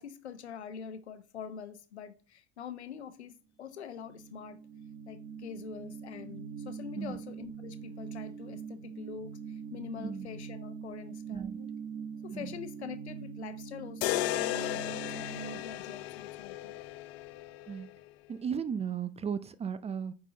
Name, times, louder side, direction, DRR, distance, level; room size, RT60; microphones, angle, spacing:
voice 1, 0.0-3.3 3.6-4.6 5.1-11.7 12.2-16.8, left 7 dB, 80° left, 0.9 m, -45 dB
sound 1, 3.9-15.6, right 6 dB, 55° right, 1.4 m, -43 dB
voice 2, 11.3-11.6 12.3-12.5 17.7-17.9 18.3-20.1, right 7 dB, 20° right, 0.5 m, -35 dB
sound 2, 14.0-18.1, left 15 dB, 60° left, 0.6 m, -35 dB
9.0 x 3.8 x 3.9 m
figure-of-eight pair, 70°, 33 cm